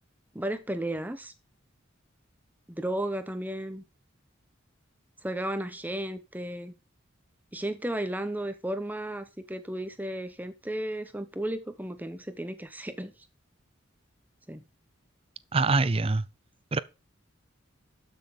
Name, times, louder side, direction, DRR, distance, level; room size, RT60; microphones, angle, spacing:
voice 1, 0.3-1.3 2.7-3.8 5.2-6.7 7.5-13.1 14.5-14.6, right 1 dB, 10° right, 1.0 m, -34 dB
voice 2, 15.5-16.2 16.7-16.8, right 3 dB, 30° right, 0.5 m, -24 dB
12.0 x 6.4 x 3.7 m
head